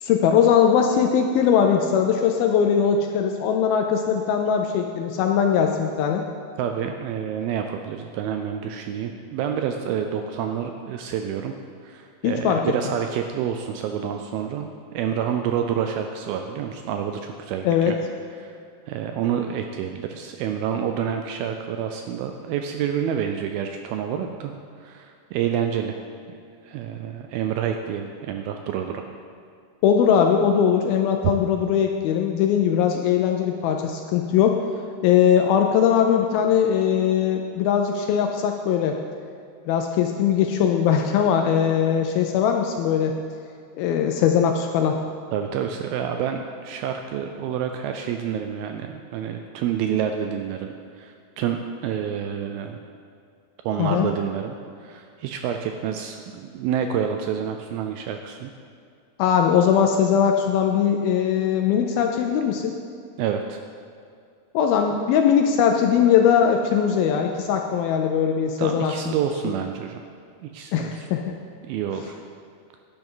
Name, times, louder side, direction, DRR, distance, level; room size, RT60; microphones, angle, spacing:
voice 1, 0.0-6.2 12.2-12.6 17.7-17.9 29.8-34.6 35.0-39.0 39.7-43.1 43.8-45.0 53.8-54.1 59.2-62.8 64.5-69.1 69.5-69.6 70.7-71.3, left 8 dB, 80° left, 4 dB, 2.2 m, -20 dB
voice 2, 6.6-11.5 11.8-18.0 18.4-18.6 18.9-24.5 24.8-26.0 26.6-29.1 31.2-31.3 45.3-52.8 53.6-54.6 54.8-58.5 63.2-63.6 68.6-70.0 70.4-71.1 71.7-72.2, right 8 dB, 80° right, 5 dB, 2.2 m, -28 dB
11.0 x 10.5 x 3.8 m, 2.3 s
omnidirectional pair, 4.7 m